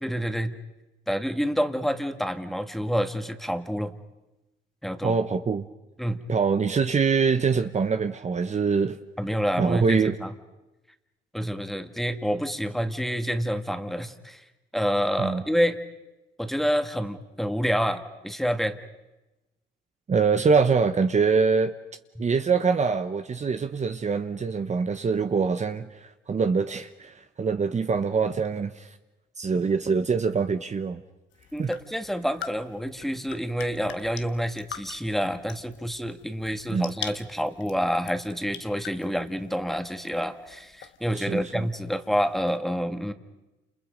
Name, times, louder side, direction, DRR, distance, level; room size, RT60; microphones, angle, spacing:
voice 1, 0.0-0.5 1.1-3.9 4.8-5.2 6.0-6.2 9.2-10.3 11.3-14.4 14.7-15.8 16.4-18.8 31.5-43.1, equal, ahead, 2.0 m, -28 dB
voice 2, 5.0-5.7 6.3-9.0 9.6-10.1 15.2-15.4 20.1-21.7 22.2-28.9 29.4-31.0 31.6-31.7 36.7-36.9 41.1-41.7, right 5 dB, 35° right, 1.1 m, -24 dB
sound 1, 31.3-42.6, left 9 dB, 70° left, 1.5 m, -44 dB
29.5 x 28.5 x 5.3 m
cardioid pair, 90°, 20 cm